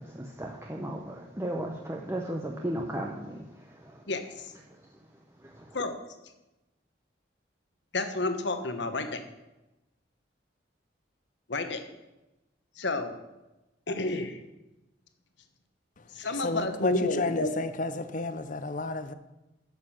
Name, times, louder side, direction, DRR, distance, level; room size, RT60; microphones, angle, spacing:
voice 1, 0.0-4.0 5.4-5.8, right 1 dB, 15° right, 0 dB, 0.7 m, -36 dB
voice 2, 4.1-4.5 5.7-6.0 7.9-9.2 11.5-11.8 12.8-13.1 13.9-14.4 16.1-17.5, left 2 dB, 65° left, 7 dB, 1.1 m, -30 dB
voice 3, 16.4-19.1, left 3 dB, 40° left, 11 dB, 0.6 m, -31 dB
9.2 x 6.8 x 7.3 m, 1.0 s
head